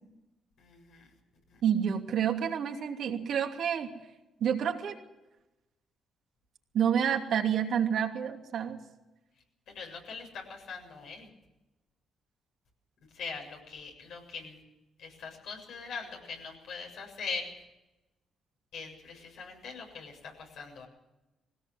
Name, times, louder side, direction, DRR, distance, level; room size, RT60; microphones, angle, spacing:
voice 1, 0.6-1.0 9.7-11.3 13.1-14.6 15.0-17.5 18.7-20.9, left 5 dB, 75° left, 1 dB, 7.4 m, -41 dB
voice 2, 1.6-3.9 4.4-5.0 6.7-8.8, right 8 dB, 70° right, 2 dB, 2.8 m, -28 dB
20.0 x 17.5 x 7.7 m, 0.99 s
cardioid pair, 90°, 0 cm